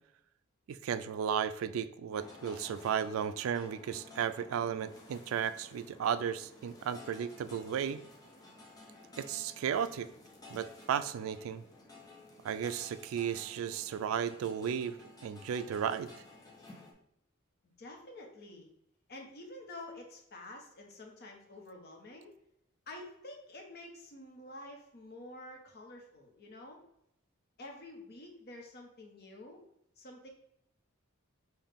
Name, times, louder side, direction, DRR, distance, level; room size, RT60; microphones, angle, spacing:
voice 1, 0.7-8.0 9.2-10.1 10.5-11.6 12.4-15.0 15.2-16.1, right 8 dB, 80° right, 13 dB, 0.3 m, -34 dB
sound 1, 2.2-16.9, left 2 dB, 20° left, 0.8 m, -54 dB
voice 2, 17.8-18.7 19.1-22.3 22.9-26.8 27.6-29.6 30.0-30.3, left 1 dB, 50° left, 1 dB, 0.9 m, -49 dB
5.6 x 2.3 x 3.5 m, 0.77 s
head